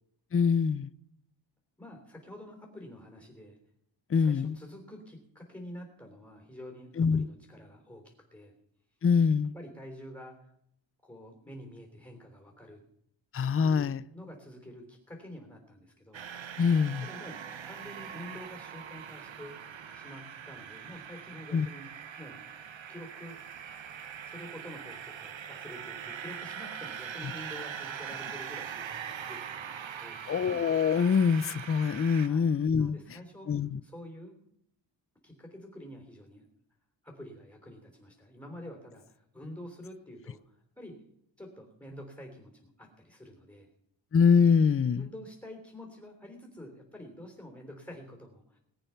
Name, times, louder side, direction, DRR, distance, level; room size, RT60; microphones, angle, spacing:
voice 1, 0.3-0.9 4.1-4.6 7.0-7.2 9.0-9.5 13.3-14.0 16.6-17.1 21.5-21.7 30.3-33.0 33.5-33.8 44.1-45.1, left 6 dB, 30° left, 0.5 m, -24 dB
voice 2, 1.8-3.6 4.1-8.5 9.5-10.5 11.0-12.8 13.6-13.9 14.1-16.2 17.0-19.6 19.9-21.9 22.2-22.4 22.9-23.4 24.2-30.2 32.2-32.5 32.8-33.5 33.8-34.3 35.2-36.5 37.0-41.0 41.4-43.7 45.0-48.6, left 1 dB, 10° left, 3.5 m, -48 dB
sound 1, 16.1-32.3, right 8 dB, 75° right, 1.2 m, -42 dB
19.5 x 9.0 x 5.8 m
wide cardioid pair, 95°, 46 cm